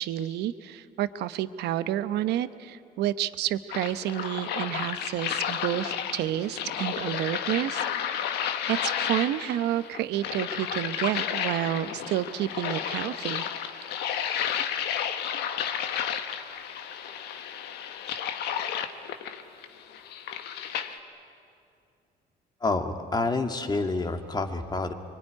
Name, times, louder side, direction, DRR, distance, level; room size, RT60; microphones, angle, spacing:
voice 1, 0.0-7.8 8.4-13.4, right 12 dB, 80° right, 13 dB, 0.9 m, -30 dB
sound 1, 3.7-21.0, left 9 dB, 80° left, 1.5 m, -32 dB
voice 2, 22.6-24.9, left 3 dB, 25° left, 6 dB, 1.9 m, -28 dB
25.0 x 23.5 x 9.7 m, 2.5 s
cardioid pair, 110°, 17 cm